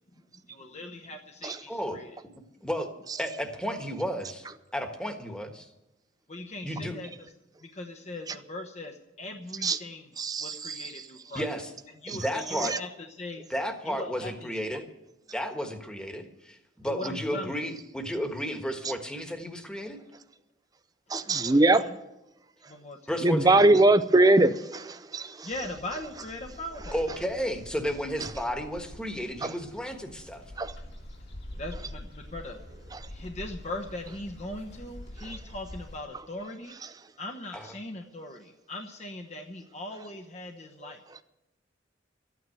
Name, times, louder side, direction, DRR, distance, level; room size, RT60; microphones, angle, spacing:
voice 1, 0.5-2.1 6.3-7.1 7.6-10.1 10.4-11.5 12.0-12.9 13.2-13.5 13.9-14.5 16.8-17.5 21.4-21.8 22.7-23.5 25.4-27.0 31.6-32.6 33.1-36.8 37.2-41.0, left 2 dB, 35° left, 3 dB, 1.0 m, -40 dB
voice 2, 1.7-2.0 2.6-2.9 3.2-4.5 4.7-5.7 6.6-7.0 11.3-11.7 12.1-12.7 13.5-14.9 15.3-20.0 23.1-23.6 26.9-30.4 37.5-37.7, equal, 5° left, 5 dB, 1.4 m, -33 dB
voice 3, 10.2-10.9 12.1-12.2 12.7-12.8 21.1-21.8 23.2-25.5 29.4-29.5 30.6-30.7 32.9-33.0, right 2 dB, 20° right, 10 dB, 0.5 m, -22 dB
sound 1, 25.5-36.0, left 1 dB, 55° left, 2.4 m, -45 dB
13.0 x 9.4 x 9.3 m, 0.95 s
head